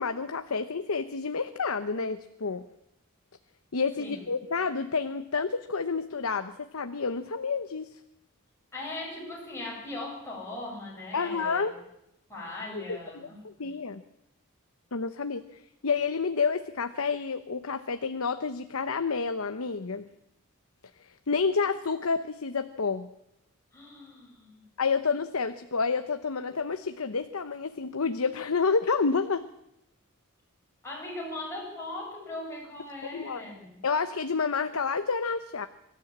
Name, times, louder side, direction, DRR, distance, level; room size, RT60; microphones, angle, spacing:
voice 1, 0.0-2.6 3.7-7.9 11.1-11.8 12.7-14.0 14.9-20.1 21.0-23.1 24.8-29.5 33.1-33.4 33.8-35.7, left 5 dB, 75° left, 9 dB, 0.9 m, -29 dB
voice 2, 8.7-11.7 12.3-13.7 23.7-24.6 30.8-33.8, left 2 dB, 15° left, -3 dB, 7.1 m, -39 dB
24.5 x 13.0 x 8.7 m, 0.84 s
head